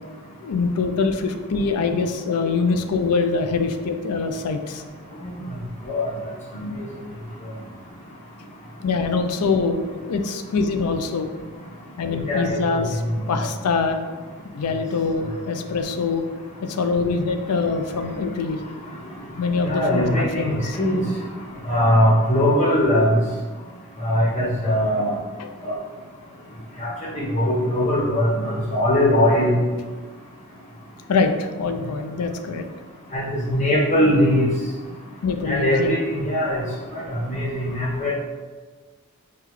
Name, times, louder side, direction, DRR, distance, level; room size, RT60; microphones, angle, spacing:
voice 1, 0.4-4.8 8.8-11.3 12.0-13.0 13.3-14.0 14.5-16.2 16.6-18.6 19.4-20.8 25.4-25.5 31.1-32.6 35.2-35.9, left 4 dB, 80° left, 6 dB, 0.4 m, -24 dB
voice 2, 12.3-12.6 13.3-13.4 19.6-21.0 21.7-23.1 24.0-25.1 25.6-25.7 26.8-26.9 27.1-29.6 33.1-34.5 35.5-36.6 36.9-38.1, equal, 30° left, -5 dB, 1.0 m, -20 dB
5.7 x 2.2 x 3.0 m, 1.4 s
head